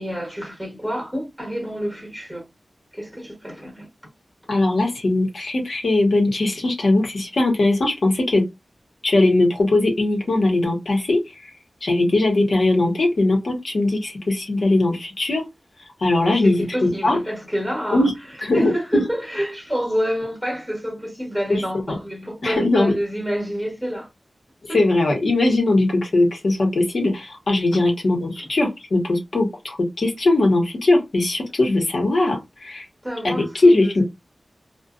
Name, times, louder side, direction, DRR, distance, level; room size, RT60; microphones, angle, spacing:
voice 1, 0.0-2.4 2.9-3.9 16.3-18.1 18.5-24.1 24.7-24.8 27.7-27.8 33.0-34.0, equal, 5° left, 1.3 m, -28 dB
voice 2, 4.5-8.4 9.0-11.5 11.8-15.4 16.0-16.6 17.0-17.2 17.9-18.1 18.4-18.7 21.5-21.6 21.9-22.0 22.4-22.9 24.7-32.9 33.2-34.0, left 2 dB, 70° left, 1.0 m, -20 dB
2.5 x 2.2 x 2.4 m
wide cardioid pair, 90°, 0 cm